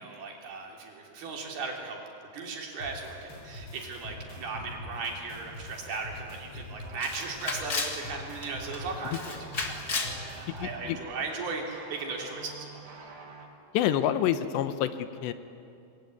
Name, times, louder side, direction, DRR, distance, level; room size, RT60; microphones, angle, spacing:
voice 1, 0.0-2.0 2.3-12.8, right 4 dB, 60° right, 1 dB, 4.9 m, -37 dB
sound 1, 2.8-10.7, left 1 dB, 25° left, 6.1 m, -44 dB
sound 2, 4.2-6.3 6.8-13.5, right 4 dB, 85° right, 5.2 m, -49 dB
Camera, 5.9-6.0 6.3-6.4 7.0-8.0 8.4-8.8 9.1-10.2, left 4 dB, 40° left, 1.3 m, -33 dB
voice 2, 10.6-11.0 13.7-15.3, left 11 dB, 80° left, 11 dB, 3.0 m, -27 dB
26.0 x 21.0 x 9.5 m, 2.6 s
omnidirectional pair, 5.1 m